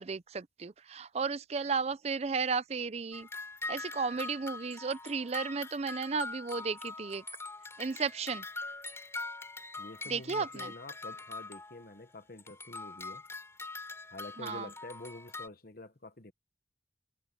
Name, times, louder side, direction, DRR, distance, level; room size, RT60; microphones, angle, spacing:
voice 1, 0.0-3.3 3.7-7.2 7.8-8.4 10.1-10.7 14.4-14.7, right 5 dB, 35° right, 0.4 m, -34 dB
sound 1, 3.1-12.0 12.4-15.5, left 3 dB, 15° left, 4.3 m, -43 dB
voice 2, 9.8-13.2 14.1-16.3, left 2 dB, 55° left, 1.3 m, -47 dB
head